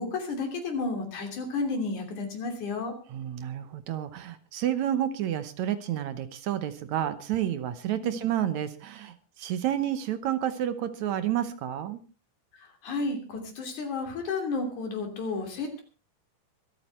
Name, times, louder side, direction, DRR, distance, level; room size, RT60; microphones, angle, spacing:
voice 1, 0.0-3.0 8.0-8.2 12.8-15.8, left 3 dB, 70° left, 4 dB, 4.5 m, -32 dB
voice 2, 3.1-12.0, right 11 dB, 70° right, 12 dB, 2.2 m, -30 dB
24.5 x 8.9 x 4.4 m, 0.34 s
omnidirectional pair, 3.6 m